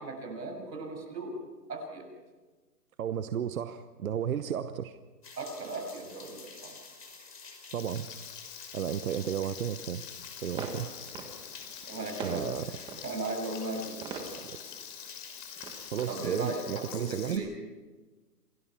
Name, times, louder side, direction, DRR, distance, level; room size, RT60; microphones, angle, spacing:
voice 1, 0.0-1.3 1.7-2.1 5.4-6.8 11.9-14.3 16.1-17.5, right 2 dB, 90° right, 4 dB, 6.9 m, -37 dB
voice 2, 3.0-5.0 7.7-8.1 8.7-10.0 10.4-10.9 12.2-12.7 14.4-14.6 15.9-17.4, right 9 dB, 60° right, 11 dB, 1.0 m, -33 dB
sound 1, 5.2-16.6, left 4 dB, 85° left, 5.8 m, -50 dB
Frying (food), 7.8-17.4, left 10 dB, 30° left, 3.4 m, -46 dB
sound 2, 10.4-17.2, right 4 dB, 10° right, 1.4 m, -45 dB
27.0 x 18.0 x 5.9 m, 1.3 s
hypercardioid pair, 155°, 48 cm